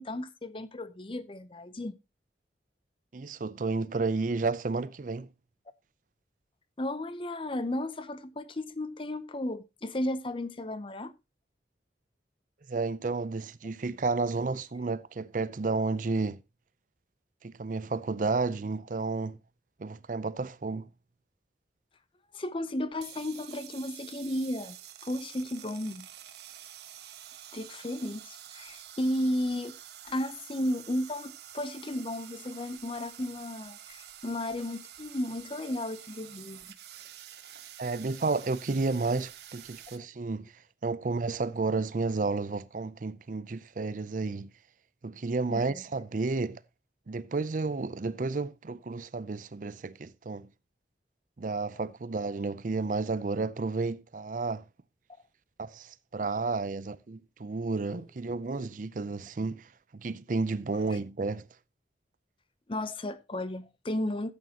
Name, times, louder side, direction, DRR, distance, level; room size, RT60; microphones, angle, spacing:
voice 1, 0.0-2.0 6.8-11.1 22.3-24.8 25.0-26.1 27.5-29.8 30.0-36.6 40.0-40.1 45.5-45.8 57.9-58.0 58.6-58.7 60.9-61.0 62.7-64.3, left 1 dB, 30° left, 0.7 m, -34 dB
voice 2, 3.1-5.3 12.7-16.4 17.4-19.4 19.8-20.9 37.8-40.5 40.8-44.5 45.0-46.6 47.1-50.5 51.4-54.6 55.6-61.4, right 3 dB, 45° right, 0.5 m, -31 dB
sound 1, 22.9-40.0, right 11 dB, 65° right, 1.0 m, -48 dB
13.0 x 8.7 x 2.8 m
head